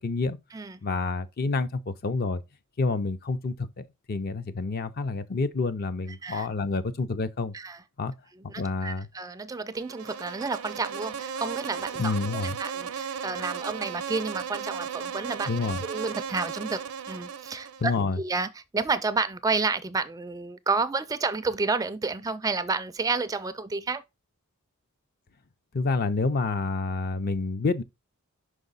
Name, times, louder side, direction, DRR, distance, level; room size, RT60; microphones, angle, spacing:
voice 1, 0.0-0.4 0.8-2.4 2.8-7.5 8.0-8.1 8.6-9.1 12.0-12.6 15.5-15.8 17.8-18.2 25.7-27.8, left 3 dB, 45° left, 0.5 m, -28 dB
voice 2, 8.5-12.1 12.6-15.5 15.8-16.8 17.1-17.9 18.2-18.5 18.7-24.0, right 4 dB, 15° right, 0.3 m, -30 dB
Insect, 9.7-18.0, right 7 dB, 90° right, 0.7 m, -36 dB
5.5 x 4.9 x 4.0 m
head